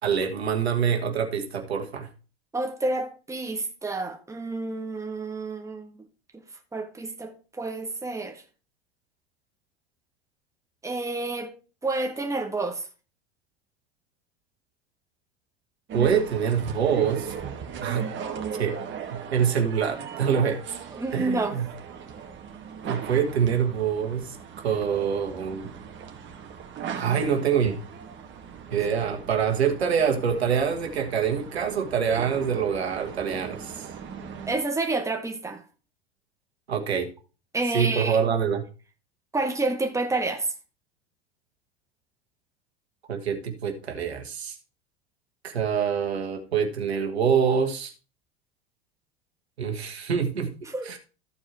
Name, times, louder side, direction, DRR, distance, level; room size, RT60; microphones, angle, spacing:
voice 1, 0.0-2.1 15.9-17.3 17.8-18.1 18.6-18.8 19.1-20.6 21.1-21.7 22.8-25.7 26.9-27.8 28.7-33.8 36.7-37.1 37.7-38.6 43.1-44.5 45.4-47.9 49.6-50.5 50.8-51.0, right 7 dB, 85° right, 1.5 m, -25 dB
voice 2, 2.5-5.9 6.3-6.4 6.7-8.4 10.8-11.5 11.8-12.8 20.9-21.6 34.5-35.6 37.5-38.2 39.3-40.5 50.7-50.9, right 2 dB, 10° right, 1.6 m, -29 dB
sound 1, 15.9-34.6, right 7 dB, 35° right, 1.7 m, -38 dB
13.5 x 4.7 x 4.4 m
hypercardioid pair, 85°, 31 cm